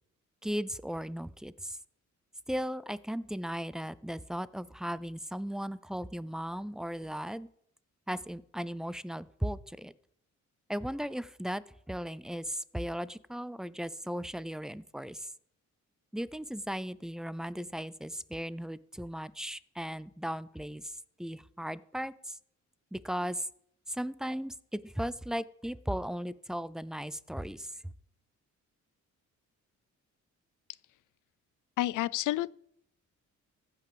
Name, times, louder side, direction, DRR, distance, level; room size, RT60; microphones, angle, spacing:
voice 1, 0.4-1.8 2.5-7.5 8.1-9.9 10.7-15.3 16.1-20.9 21.2-22.4 22.9-23.5 23.9-27.7, equal, ahead, 0.4 m, -37 dB
voice 2, 31.8-32.5, left 15 dB, 90° left, 0.5 m, -29 dB
15.0 x 5.8 x 6.9 m
cardioid pair, 115°, 30 cm